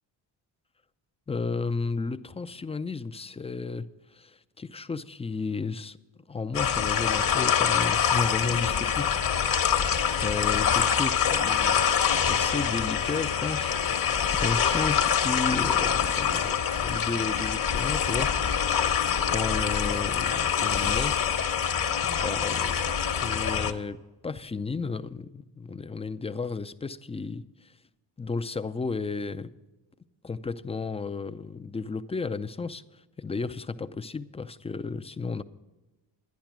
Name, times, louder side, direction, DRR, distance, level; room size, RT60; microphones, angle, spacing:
voice 1, 1.3-3.9 4.1-6.0 6.3-9.2 9.7-9.8 10.1-18.3 19.3-21.1 22.0-22.8 23.2-24.0 24.2-27.7 28.2-29.5 30.2-32.8 33.2-35.4, left 4 dB, 15° left, 0.4 m, -33 dB
sound 1, 6.5-23.7, left 8 dB, 45° left, 1.0 m, -25 dB
11.0 x 10.5 x 6.0 m
cardioid pair, 80°, 46 cm